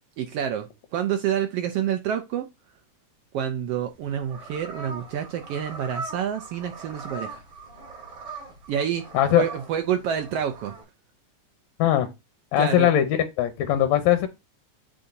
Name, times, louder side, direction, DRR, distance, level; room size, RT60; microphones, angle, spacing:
voice 1, 0.2-2.5 3.3-7.4 8.7-9.0 9.3-10.7 12.6-12.9, right 9 dB, 80° right, 1.4 m, -28 dB
sound 1, 3.9-10.8, right 3 dB, 55° right, 3.3 m, -40 dB
voice 2, 12.5-13.1 13.4-14.3, left 12 dB, 80° left, 2.0 m, -20 dB
8.7 x 4.1 x 2.7 m
omnidirectional pair, 3.4 m